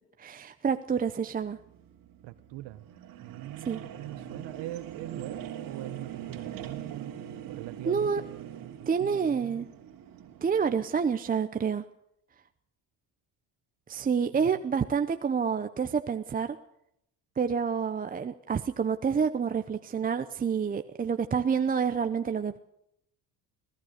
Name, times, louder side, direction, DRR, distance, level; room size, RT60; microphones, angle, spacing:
voice 1, 0.2-1.6 3.7-3.8 7.9-8.2 8.9-9.7 10.4-11.8 13.9-16.6 17.4-22.6, right 6 dB, 20° right, 8 dB, 0.7 m, -28 dB
sound 1, 1.4-11.2, right 10 dB, 55° right, 3.0 m, -43 dB
voice 2, 2.2-2.9 3.2-9.7 14.3-14.6, right 16 dB, 80° right, 10 dB, 1.2 m, -42 dB
26.0 x 17.5 x 6.6 m, 0.76 s
cardioid pair, 160°, 41 cm